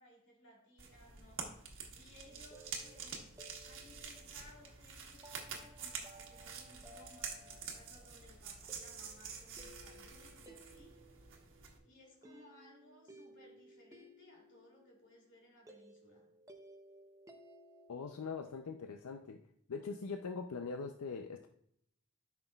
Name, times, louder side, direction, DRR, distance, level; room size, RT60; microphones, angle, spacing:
voice 1, 0.0-3.3 3.6-11.0 11.8-16.3, left 1 dB, 60° left, -1 dB, 2.8 m, -62 dB
sound 1, 0.8-11.8, right 6 dB, 60° right, 1.4 m, -48 dB
sound 2, 2.3-18.1, right 1 dB, 15° right, 0.7 m, -59 dB
voice 2, 17.9-19.4 19.7-21.5, left 4 dB, 90° left, 5 dB, 0.5 m, -42 dB
13.0 x 5.9 x 2.4 m, 0.72 s
head